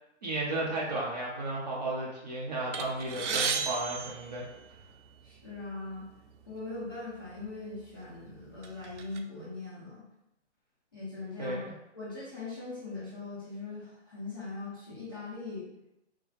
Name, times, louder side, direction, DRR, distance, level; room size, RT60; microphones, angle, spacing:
voice 1, 0.2-4.4 11.4-11.6, right 2 dB, 35° right, -4 dB, 0.7 m, -33 dB
sound 1, 2.7-5.1 5.9-6.0 6.3-6.5 7.4-7.5 8.0-9.2, right 5 dB, 75° right, 0.6 m, -34 dB
voice 2, 5.2-6.0 6.5-10.0 10.9-11.6 11.9-15.7, left 3 dB, 20° left, -10 dB, 0.6 m, -40 dB
3.7 x 2.7 x 3.2 m, 0.87 s
hypercardioid pair, 175°, 36 cm